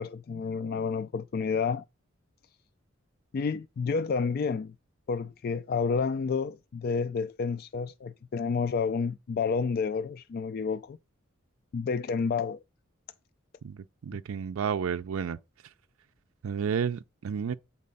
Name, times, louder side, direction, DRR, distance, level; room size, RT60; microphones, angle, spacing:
voice 1, 0.0-1.8 3.3-4.7 5.1-11.0 11.7-12.6, left 5 dB, 50° left, 0.3 m, -30 dB
voice 2, 14.0-15.4 16.4-17.6, right 7 dB, 90° right, 0.4 m, -31 dB
8.5 x 4.2 x 5.4 m
head